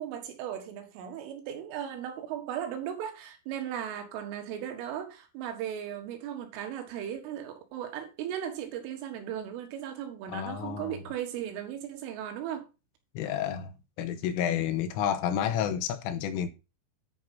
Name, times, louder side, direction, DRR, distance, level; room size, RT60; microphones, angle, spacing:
voice 1, 0.0-12.7, right 10 dB, 80° right, 4.0 m, -37 dB
voice 2, 10.3-11.0 13.2-16.5, left 9 dB, 85° left, 3.6 m, -30 dB
10.5 x 4.8 x 5.4 m
omnidirectional pair, 5.7 m